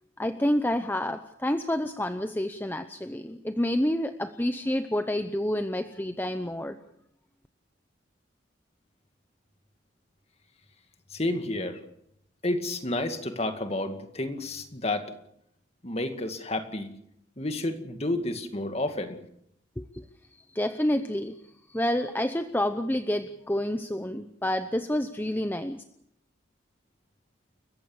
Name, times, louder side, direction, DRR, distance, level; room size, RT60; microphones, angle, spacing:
voice 1, 0.2-6.8 19.8-20.1 20.5-21.4 21.7-25.8, left 1 dB, 10° left, 9 dB, 0.8 m, -28 dB
voice 2, 11.1-11.8 12.4-15.1 15.8-16.9 17.4-19.2, left 1 dB, 30° left, 7 dB, 2.2 m, -30 dB
29.5 x 15.0 x 7.3 m, 0.72 s
head